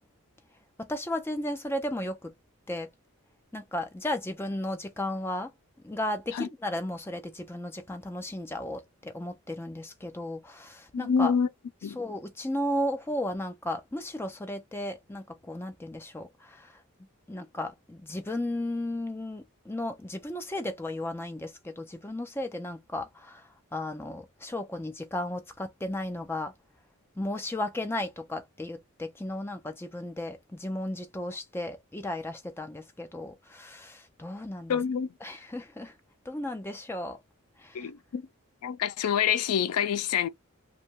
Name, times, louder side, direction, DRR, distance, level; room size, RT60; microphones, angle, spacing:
voice 1, 0.8-2.3 2.7-2.9 3.5-5.5 5.8-11.3 12.0-16.8 17.3-26.5 27.2-34.8 35.2-35.9 36.3-37.2 37.6-37.9, left 1 dB, 10° left, 0.4 m, -34 dB
voice 2, 10.9-11.5 11.8-12.0 34.7-35.1 37.7-38.3 38.6-40.3, left 7 dB, 85° left, 0.4 m, -27 dB
2.8 x 2.1 x 2.9 m
head